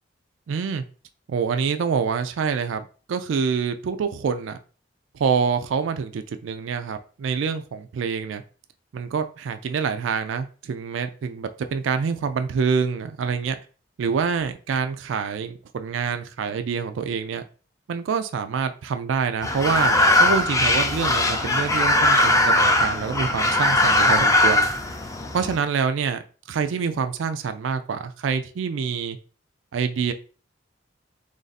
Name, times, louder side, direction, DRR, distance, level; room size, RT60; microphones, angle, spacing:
voice 1, 0.5-0.8 1.3-4.6 5.1-8.4 8.9-13.6 14.0-17.4 17.9-24.7 25.3-26.2 26.5-29.2 29.7-30.1, right 6 dB, 85° right, 8 dB, 0.3 m, -26 dB
sound 1, 19.4-25.6, left 1 dB, 15° left, 0.4 m, -20 dB
3.3 x 2.6 x 4.0 m, 0.38 s
head